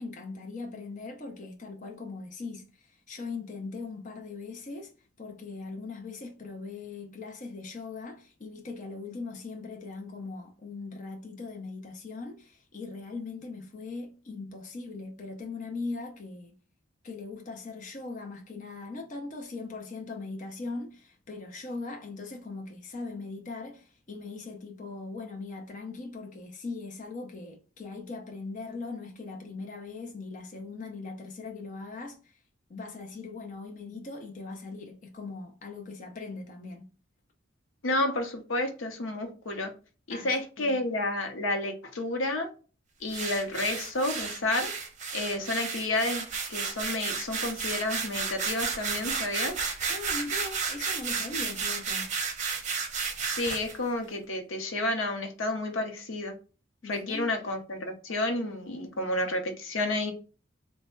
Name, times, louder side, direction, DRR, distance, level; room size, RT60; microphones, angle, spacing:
voice 1, 0.0-4.9 5.2-16.5 17.0-32.3 32.7-36.8 40.1-40.3 40.6-40.8 49.9-52.1 56.8-57.3, left 3 dB, 40° left, 0.5 m, -40 dB
voice 2, 37.8-39.7 40.1-42.5 43.0-44.7 45.1-49.6 53.4-56.3 56.8-60.1, left 2 dB, 80° left, 0.7 m, -30 dB
sound 1, 43.1-53.8, right 5 dB, 40° right, 0.6 m, -32 dB
3.3 x 2.2 x 4.3 m
head